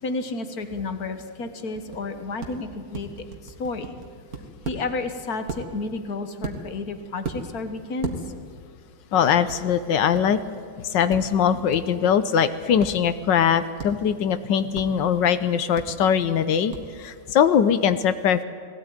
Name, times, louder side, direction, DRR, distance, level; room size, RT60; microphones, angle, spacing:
voice 1, 0.0-4.0 4.6-8.1, left 3 dB, 55° left, 8 dB, 1.8 m, -31 dB
sound 1, 1.8-2.0 2.4-2.5 2.9-4.8 5.5-5.6 6.4-6.8 7.2-7.4 8.0-8.1 9.5-9.6 10.1-10.2 11.1-11.2 11.7-11.8 12.8-12.9 13.8-13.9 14.7-14.8 15.7-15.8 16.7-16.8, right 5 dB, 50° right, 2.3 m, -33 dB
voice 2, 9.1-10.4 10.8-18.4, left 8 dB, 75° left, 12 dB, 1.4 m, -21 dB
20.0 x 17.5 x 9.6 m, 2.1 s
omnidirectional pair, 2.1 m